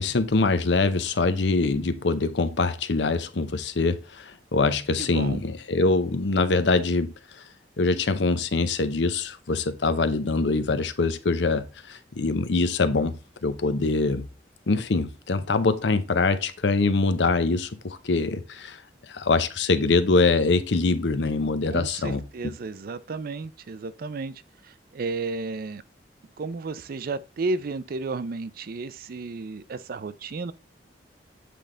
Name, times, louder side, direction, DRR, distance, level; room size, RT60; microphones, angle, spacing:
voice 1, 0.0-7.4 7.8-14.3 14.7-18.8 19.1-22.2, left 3 dB, 75° left, 0.7 m, -24 dB
voice 2, 5.0-5.4 21.7-25.8 26.4-30.5, right 3 dB, 55° right, 0.4 m, -33 dB
7.7 x 3.4 x 3.7 m
head